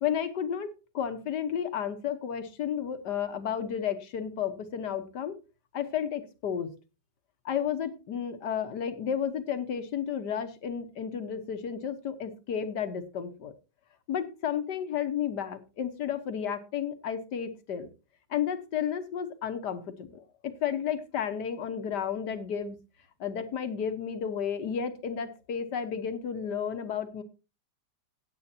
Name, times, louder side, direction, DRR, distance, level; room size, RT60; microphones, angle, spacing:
voice 1, 0.0-5.4 5.7-6.7 7.5-13.5 14.1-17.9 18.3-22.8 23.2-27.2, left 8 dB, 65° left, 10 dB, 1.7 m, -32 dB
16.5 x 8.3 x 2.8 m, 0.30 s
omnidirectional pair, 2.0 m